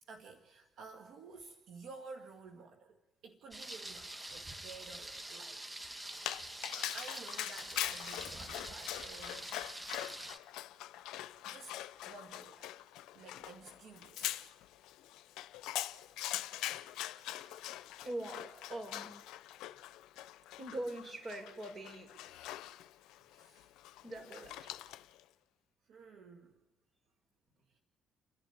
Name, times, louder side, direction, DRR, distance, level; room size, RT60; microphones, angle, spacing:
voice 1, 0.0-5.6 6.7-9.5 10.1-10.4 11.4-11.8 12.1-12.7 13.1-14.5 19.7-19.8 23.3-23.7 25.8-26.6 27.7-27.8, right 4 dB, 75° right, 4 dB, 1.9 m, -53 dB
Thunder, 3.5-10.4, right 1 dB, 20° right, 1.7 m, -46 dB
Dog, 6.1-25.2, left 14 dB, 80° left, 0.6 m, -43 dB
voice 2, 16.9-17.8 18.0-19.1 20.6-22.1 24.0-24.7, right 1 dB, 40° right, 3 dB, 7.0 m, -43 dB
30.0 x 11.0 x 9.4 m, 1.1 s
supercardioid pair, 65°, 0 cm